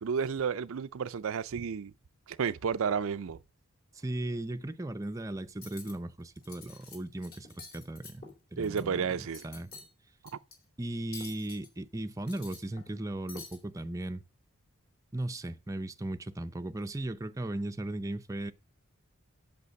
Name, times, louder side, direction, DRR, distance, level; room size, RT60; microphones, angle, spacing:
voice 1, 0.0-1.9 2.3-3.4 8.6-9.5, right 6 dB, 65° right, 0.5 m, -31 dB
voice 2, 3.9-8.2 8.5-9.7 10.8-14.2 15.1-18.5, right 1 dB, 15° right, 0.5 m, -37 dB
Cutlery silverware, 5.5-5.9 6.4-7.0 7.2-8.8 9.2-9.9 10.3-10.5 11.1-11.7 12.1-13.0 13.3-13.6, left 4 dB, 45° left, 3.1 m, -48 dB
8.3 x 6.8 x 6.3 m
head